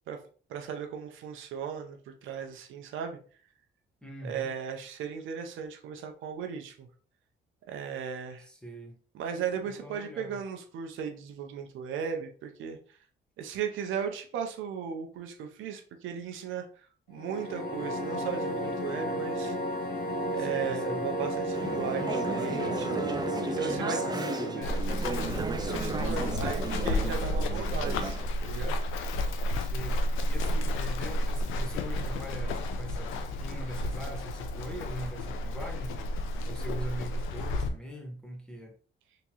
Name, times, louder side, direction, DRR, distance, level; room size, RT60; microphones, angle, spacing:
voice 1, 0.5-3.2 4.2-6.9 7.7-8.5 9.1-12.8 13.4-16.7 17.1-19.6 20.3-23.0 23.5-24.0 25.7-28.8, right 7 dB, 85° right, 0.6 m, -36 dB
voice 2, 4.0-4.5 8.4-9.0 9.5-10.4 20.3-21.0 23.9-25.3 29.5-36.0 36.5-38.7, equal, 5° left, 1.1 m, -42 dB
sound 1, 17.1-24.9, equal, 50° left, 1.4 m, -33 dB
Conversation / Chatter, 21.5-28.2, right 3 dB, 20° right, 0.4 m, -35 dB
Run, 24.6-37.7, left 1 dB, 90° left, 0.5 m, -31 dB
3.5 x 2.9 x 2.9 m
cardioid pair, 90°, 20 cm